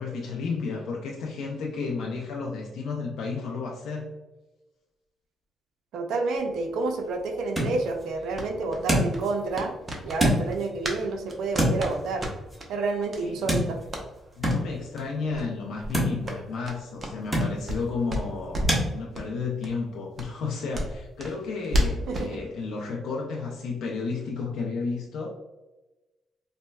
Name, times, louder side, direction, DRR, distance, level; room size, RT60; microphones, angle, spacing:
voice 1, 0.0-4.1 13.2-13.7 14.4-25.3, left 4 dB, 80° left, -2 dB, 0.5 m, -32 dB
voice 2, 5.9-9.8 10.0-12.2 12.7-13.8 22.1-22.4, right 3 dB, 80° right, 4 dB, 0.4 m, -29 dB
sound 1, 6.4-18.9, equal, 10° right, 1.1 m, -31 dB
sound 2, 8.3-11.0 11.3-12.7 13.1-13.2 13.5-14.1 14.4-14.6 14.9-15.0 15.3-15.5 15.8-17.8 18.1-18.8 19.1-19.3 19.6-19.7 20.1-22.3, equal, 35° right, 0.6 m, -32 dB
4.2 x 2.1 x 2.2 m, 1.1 s
cardioid pair, 90°, 0 cm